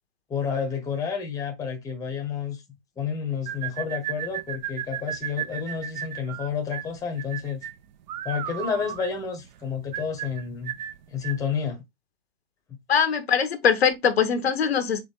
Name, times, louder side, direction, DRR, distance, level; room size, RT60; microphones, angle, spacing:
voice 1, 0.3-2.6 3.0-7.6 8.2-10.7 11.1-11.8, left 6 dB, 10° left, 0.9 m, -30 dB
sound 1, 3.5-11.5, right 11 dB, 45° right, 0.6 m, -35 dB
voice 2, 12.9-15.0, left 7 dB, 80° left, 0.9 m, -22 dB
4.3 x 2.9 x 3.5 m
hypercardioid pair, 120°, 31 cm